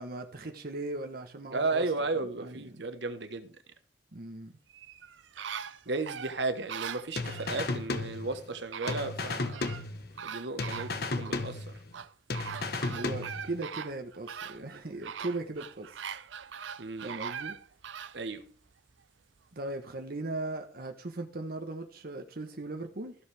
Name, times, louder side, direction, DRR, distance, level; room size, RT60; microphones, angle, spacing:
voice 1, 0.0-1.8 2.2-2.8 4.1-4.5 12.9-15.9 17.0-17.6 19.5-23.1, right 2 dB, 55° right, 1.0 m, -38 dB
voice 2, 1.5-3.5 5.9-9.7 10.2-11.7 16.8-17.2 18.1-18.5, right 3 dB, 70° right, 1.2 m, -34 dB
sound 1, 4.7-7.6 8.3-8.4 8.7-9.8 10.2-11.4 11.9-18.2 18.7-18.8, right 7 dB, 90° right, 0.6 m, -41 dB
sound 2, 7.2-8.6 8.9-10.3 10.6-12.0 12.3-13.6, left 3 dB, 55° left, 1.1 m, -34 dB
14.0 x 7.2 x 3.4 m
head